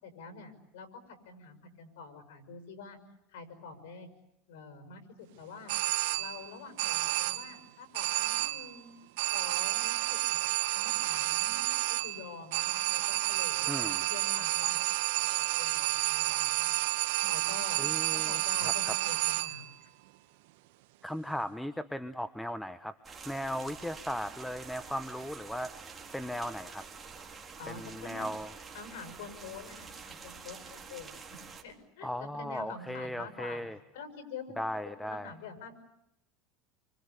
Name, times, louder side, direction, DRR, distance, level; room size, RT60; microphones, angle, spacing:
voice 1, 0.0-3.0 3.3-4.1 4.5-5.8 6.2-9.0 9.3-10.4 10.7-13.7 14.1-14.8 15.1-16.8 17.3-17.8 18.1-19.9 27.6-28.3 28.7-31.2 31.6-33.6 33.9-35.8, left 5 dB, 85° left, 9 dB, 6.3 m, -47 dB
sound 1, 5.7-6.5 6.8-7.6 7.9-8.8 9.2-19.7, right 18 dB, 80° right, 1.5 m, -30 dB
voice 2, 13.7-14.0 17.8-18.9 21.0-22.9 23.2-25.9 26.1-26.8 27.7-28.5 32.0-33.8 34.6-35.3, equal, 5° left, 12 dB, 1.0 m, -37 dB
sound 2, 23.0-31.6, right 5 dB, 15° right, 4.0 m, -48 dB
28.0 x 25.0 x 8.3 m, 0.81 s
supercardioid pair, 135°, 0 cm